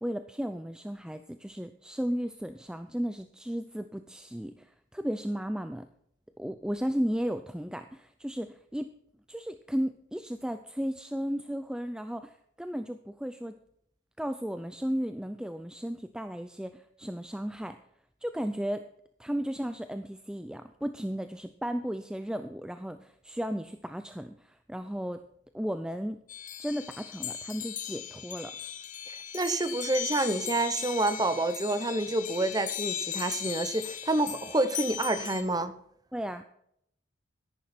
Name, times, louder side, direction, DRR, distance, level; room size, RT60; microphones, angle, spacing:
voice 1, 0.0-5.9 6.4-8.9 9.3-13.5 14.2-17.8 18.2-18.9 19.2-25.2 25.5-26.2 26.6-28.5 36.1-36.4, equal, 5° right, 9 dB, 0.4 m, -34 dB
sound 1, 26.3-35.4, left 9 dB, 40° left, 1.3 m, -38 dB
voice 2, 29.1-35.7, right 2 dB, 20° right, 11 dB, 0.8 m, -28 dB
13.5 x 11.0 x 4.3 m, 0.71 s
head